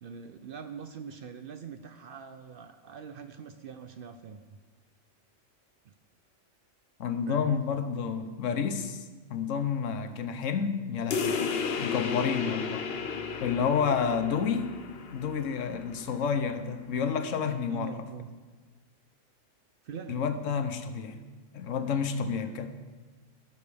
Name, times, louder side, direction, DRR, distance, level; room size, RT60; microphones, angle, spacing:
voice 1, 0.0-4.6 7.3-7.6 17.7-18.3 19.8-20.3, right 7 dB, 60° right, 8 dB, 0.6 m, -43 dB
voice 2, 7.0-9.0 9.3-11.4 11.8-12.9 13.4-14.7 15.1-17.9 20.1-21.2 21.5-22.7, left 6 dB, 80° left, 9 dB, 1.1 m, -30 dB
sound 1, 11.1-16.2, left 5 dB, 60° left, 0.8 m, -33 dB
16.5 x 6.7 x 3.4 m, 1.3 s
omnidirectional pair, 1.3 m